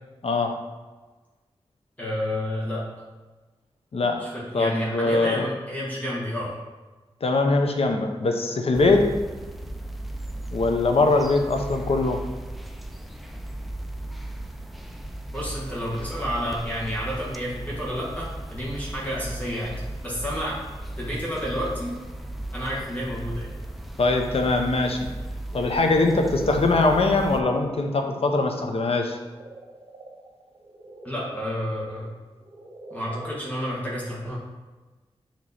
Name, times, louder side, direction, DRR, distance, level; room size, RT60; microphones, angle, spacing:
voice 1, 0.2-0.5 3.9-4.2 4.5-5.5 7.2-9.1 10.5-12.2 24.0-25.1 25.5-29.2, left 3 dB, 70° left, 4 dB, 0.7 m, -22 dB
voice 2, 2.0-2.8 4.2-6.6 15.3-20.6 21.0-21.9 22.5-23.5 31.0-32.1 32.9-34.4, equal, 15° left, -6 dB, 1.5 m, -30 dB
sound 1, 8.7-27.4, right 1 dB, ahead, 0.4 m, -36 dB
sound 2, 25.9-31.3 32.3-33.6, right 2 dB, 65° right, 1.0 m, -42 dB
7.4 x 3.1 x 4.1 m, 1.3 s
wide cardioid pair, 85°, 10 cm